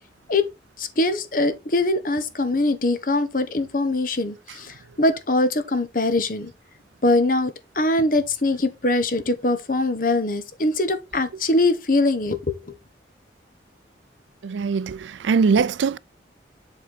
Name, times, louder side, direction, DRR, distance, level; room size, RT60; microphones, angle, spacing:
voice 1, 0.8-6.5 7.0-12.5, left 2 dB, 50° left, 1.1 m, -22 dB
voice 2, 14.4-16.0, right 5 dB, 85° right, 0.4 m, -21 dB
7.6 x 4.4 x 4.2 m
head